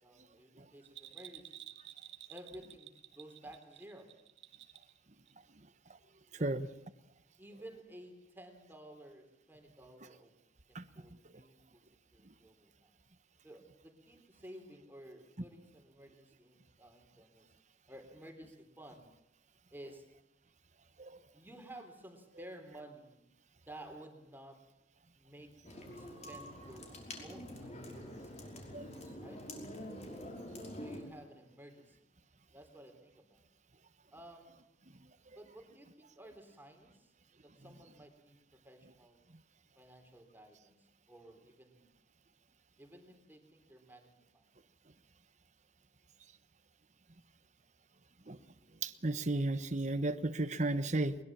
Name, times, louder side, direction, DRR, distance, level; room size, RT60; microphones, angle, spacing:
voice 1, 0.0-1.6 2.3-4.1 6.4-6.6 7.4-11.8 12.1-13.0 13.4-17.5 17.9-19.1 19.7-20.1 21.3-23.2 23.6-24.6 25.2-26.9 27.2-28.4 29.2-29.4 30.8-32.1 32.5-33.5 34.1-34.7 35.3-37.1 37.4-39.2 39.8-41.9 42.8-44.5, right 1 dB, 10° right, 5 dB, 3.5 m, -54 dB
Bell, 0.8-5.0 5.3-5.4, right 13 dB, 75° right, 1.7 m, -52 dB
sound 1, 25.6-31.0, left 1 dB, 40° left, 5.6 m, -46 dB
voice 2, 48.8-51.2, right 2 dB, 40° right, 10 dB, 1.2 m, -34 dB
22.0 x 22.0 x 7.5 m, 0.84 s
head